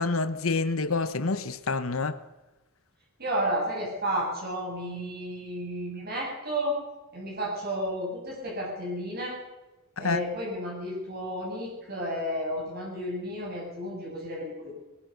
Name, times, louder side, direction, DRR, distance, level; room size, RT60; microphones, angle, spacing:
voice 1, 0.0-2.2 10.0-10.2, left 3 dB, 85° left, 1.2 m, -27 dB
voice 2, 3.2-6.8 7.1-9.4 10.0-14.7, equal, 50° right, 8.0 m, -32 dB
22.0 x 21.5 x 6.9 m
head